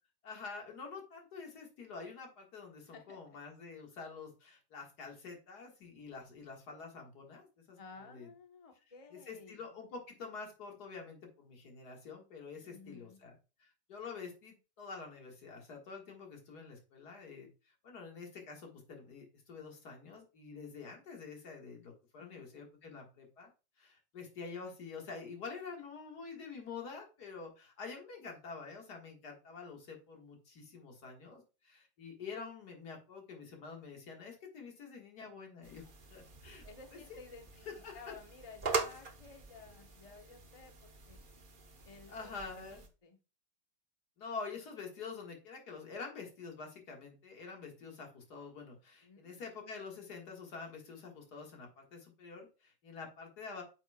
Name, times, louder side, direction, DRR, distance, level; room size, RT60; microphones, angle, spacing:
voice 1, 0.2-8.3 9.1-13.3 13.6-23.5 23.8-35.8 36.1-36.6 36.9-37.2 37.7-38.0 42.1-42.8 44.2-53.6, left 5 dB, 65° left, 1 dB, 2.2 m, -47 dB
voice 2, 2.9-3.4 7.8-9.6 12.6-13.2 22.2-22.6 36.6-37.7 37.9-41.2 41.8-43.2 49.0-49.4, left 4 dB, 25° left, 5 dB, 0.8 m, -54 dB
sound 1, 35.6-42.9, right 4 dB, 40° right, 0.8 m, -43 dB
8.9 x 7.0 x 2.3 m, 0.32 s
omnidirectional pair, 1.9 m